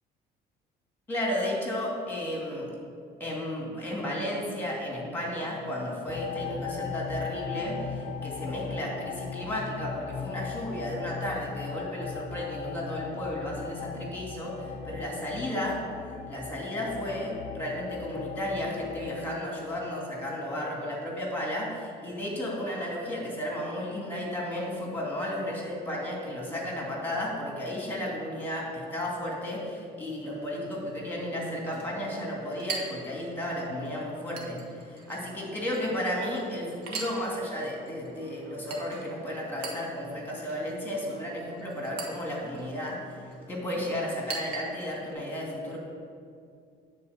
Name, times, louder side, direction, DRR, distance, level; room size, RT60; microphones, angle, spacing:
voice 1, 1.1-2.7 3.2-15.8 16.3-43.0 43.5-45.8, left 1 dB, 10° left, -2 dB, 2.5 m, -33 dB
sound 1, 6.1-19.2, left 6 dB, 45° left, 0.5 m, -38 dB
Chink clink, 30.2-45.1, right 4 dB, 90° right, 1.4 m, -44 dB
9.3 x 4.4 x 6.9 m, 2.3 s
cardioid pair, 110°, 17 cm